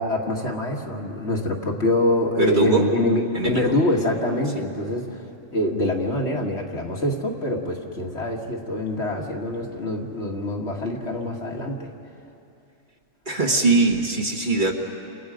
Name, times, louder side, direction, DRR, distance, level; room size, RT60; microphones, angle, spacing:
voice 1, 0.0-5.2 5.5-11.9, left 1 dB, 60° left, 0 dB, 2.3 m, -25 dB
voice 2, 2.4-2.9 3.3-3.7 13.3-14.7, right 3 dB, 40° right, 1 dB, 1.9 m, -21 dB
29.5 x 28.0 x 5.1 m, 2.6 s
omnidirectional pair, 1.3 m